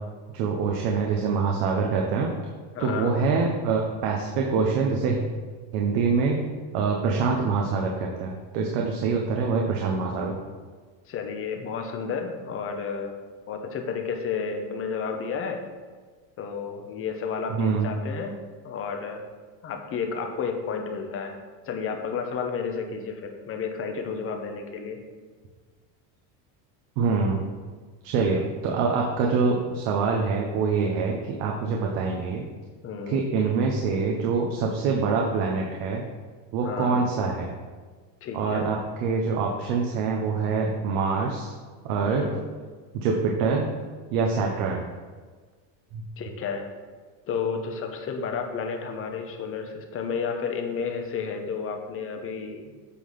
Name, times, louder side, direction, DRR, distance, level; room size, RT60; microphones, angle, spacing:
voice 1, 0.3-2.3 2.8-5.2 5.7-6.4 6.7-10.3 17.5-17.9 27.0-27.5 28.0-32.4 33.1-36.0 36.5-37.5 38.3-41.5 41.8-42.2 42.9-43.7 44.1-44.9 45.9-46.0, right 4 dB, 65° right, 0 dB, 1.0 m, -25 dB
voice 2, 2.7-3.2 11.1-13.2 13.5-15.6 16.4-18.4 18.6-19.2 19.6-21.4 21.7-25.0 32.8-33.2 36.6-37.1 38.2-38.8 42.1-42.5 46.2-46.7 47.3-52.7, left 5 dB, 30° left, 4 dB, 0.8 m, -31 dB
8.3 x 3.8 x 5.6 m, 1.5 s
cardioid pair, 155°, 47 cm